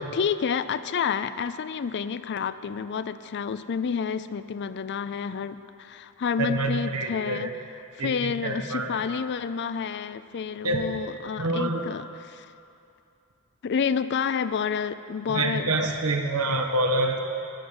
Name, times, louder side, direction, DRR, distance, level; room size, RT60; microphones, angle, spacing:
voice 1, 0.0-7.5 7.9-12.5 13.6-15.7, left 6 dB, 50° left, 14 dB, 0.4 m, -29 dB
voice 2, 6.4-7.5 8.0-9.0 10.6-10.8 11.4-11.9 15.3-17.2, right 2 dB, 80° right, 4 dB, 1.3 m, -26 dB
14.0 x 6.5 x 9.5 m, 2.6 s
head